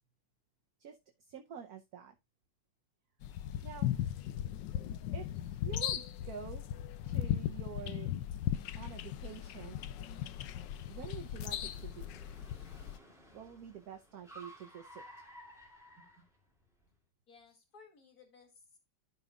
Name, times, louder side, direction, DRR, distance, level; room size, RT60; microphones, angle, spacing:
voice 1, 0.8-2.1 3.6-4.1 5.1-6.7 7.1-8.1 8.7-9.8 10.9-12.2 13.3-15.0, right 8 dB, 60° right, 4 dB, 1.1 m, -48 dB
sound 1, 3.2-13.0, left 11 dB, 75° left, 1.2 m, -37 dB
Car, 7.0-16.9, right 1 dB, ahead, 2.3 m, -57 dB
voice 2, 17.3-18.8, left 4 dB, 45° left, 3 dB, 2.8 m, -60 dB
14.5 x 5.5 x 2.4 m, 0.22 s
omnidirectional pair, 2.2 m